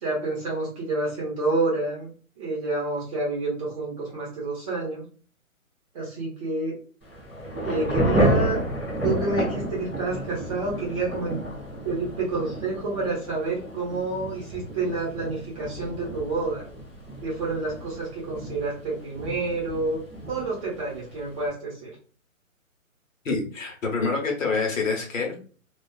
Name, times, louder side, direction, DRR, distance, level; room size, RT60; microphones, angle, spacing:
voice 1, 0.0-2.1 2.4-5.0 5.9-6.7 7.6-8.6 9.0-11.4 11.8-16.7 17.2-20.0 20.3-21.9, right 3 dB, 25° right, -5 dB, 0.9 m, -28 dB
Thunder / Rain, 7.0-21.5, right 1 dB, 5° left, 0.5 m, -31 dB
voice 2, 23.2-25.3, left 4 dB, 65° left, 0 dB, 1.0 m, -26 dB
2.3 x 2.3 x 2.3 m, 0.41 s
hypercardioid pair, 145°, 42 cm